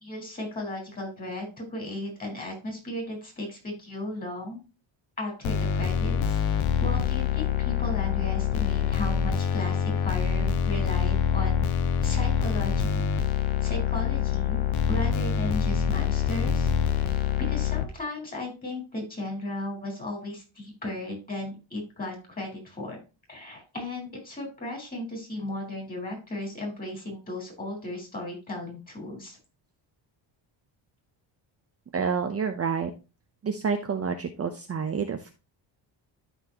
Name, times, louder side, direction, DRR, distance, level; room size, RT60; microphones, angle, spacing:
voice 1, 0.0-4.6 5.2-6.4 6.8-11.6 12.0-13.0 13.6-14.6 14.9-16.7 17.4-23.0 23.3-29.4, left 1 dB, 20° left, 0 dB, 4.4 m, -35 dB
sound 1, 5.4-17.8, left 8 dB, 80° left, 1.1 m, -25 dB
voice 2, 31.9-32.9 33.4-35.4, right 6 dB, 30° right, 5 dB, 0.7 m, -28 dB
13.0 x 4.4 x 2.9 m, 0.30 s
cardioid pair, 135°, 48 cm